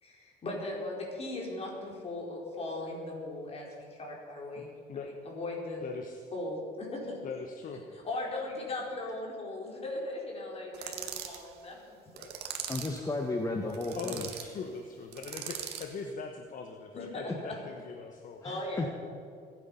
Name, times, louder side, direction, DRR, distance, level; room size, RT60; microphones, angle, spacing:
voice 1, 0.0-5.8 6.3-7.2 8.0-11.9 12.1-12.3 16.9-17.6 18.4-18.9, left 2 dB, 35° left, -2 dB, 4.9 m, -38 dB
voice 2, 4.6-5.1 5.8-6.3 7.2-7.8 14.0-18.4, left 5 dB, 55° left, 4 dB, 1.2 m, -41 dB
sound 1, 10.7-11.4 12.2-13.0 13.7-14.5 15.1-15.9, right 9 dB, 80° right, 1.8 m, -40 dB
voice 3, 12.7-14.3 18.4-18.9, left 2 dB, 20° left, 2 dB, 1.3 m, -33 dB
25.5 x 9.3 x 5.7 m, 2.4 s
cardioid pair, 110°, 17 cm